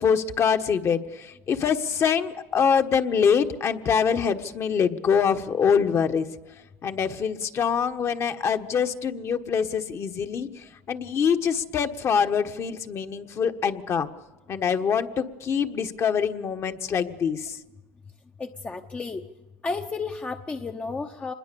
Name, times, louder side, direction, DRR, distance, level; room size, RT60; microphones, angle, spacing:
voice 1, 0.0-6.3 6.8-10.5 10.9-14.1 14.5-17.6, left 7 dB, 35° left, 7 dB, 1.4 m, -24 dB
voice 2, 18.4-19.2 19.6-21.3, left 4 dB, 15° left, 6 dB, 0.9 m, -32 dB
26.0 x 21.0 x 7.0 m, 1.1 s
supercardioid pair, 130°, 8 cm